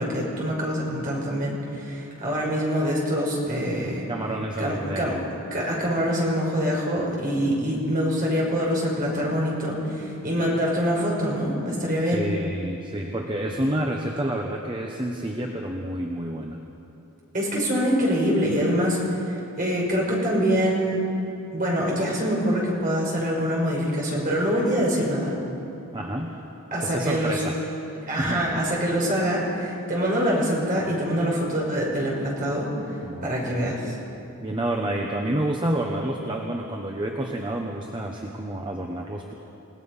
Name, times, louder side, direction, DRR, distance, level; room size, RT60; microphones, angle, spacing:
voice 1, 0.0-4.0 4.6-5.2 5.5-12.2 17.3-21.0 21.5-25.4 26.7-27.4 28.1-32.7 33.2-33.9, equal, 40° right, -3 dB, 5.9 m, -25 dB
voice 2, 4.1-5.3 12.1-16.6 25.9-26.4 26.8-27.6 28.0-28.4 33.0-33.5 34.4-39.3, right 1 dB, 20° right, 1 dB, 1.2 m, -29 dB
29.0 x 18.0 x 5.6 m, 2.8 s
head